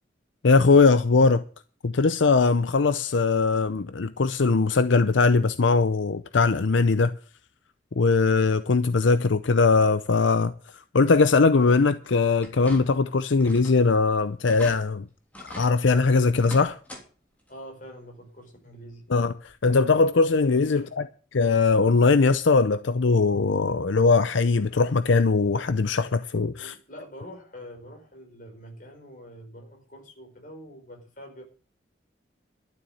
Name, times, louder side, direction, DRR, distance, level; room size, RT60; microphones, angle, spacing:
voice 1, 0.4-1.4 1.8-7.1 8.0-10.5 10.9-15.1 15.5-16.8 19.1-21.1 21.3-26.7, left 4 dB, 80° left, 0.6 m, -20 dB
sound 1, 12.4-13.1 13.4-13.8 14.1-14.2 14.5-14.8 15.3-15.7 16.3-17.0 17.4-17.5 18.9-19.0 19.5-19.6, left 1 dB, 10° left, 3.2 m, -42 dB
voice 2, 17.5-19.1 20.8-20.9 26.5-31.4, equal, 45° left, 5.0 m, -45 dB
12.5 x 7.3 x 9.1 m
head